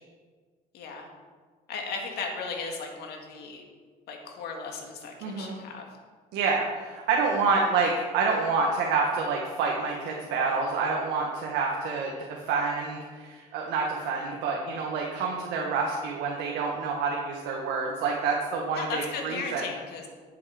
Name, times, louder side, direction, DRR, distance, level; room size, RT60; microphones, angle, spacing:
voice 1, 0.7-1.1 1.7-3.6 4.1-5.9 18.7-20.1, left 4 dB, 75° left, 2 dB, 2.0 m, -36 dB
voice 2, 5.2-5.6 6.3-19.6, right 4 dB, 85° right, -1 dB, 1.5 m, -28 dB
11.0 x 7.6 x 5.0 m, 1.5 s
cardioid pair, 110°, 17 cm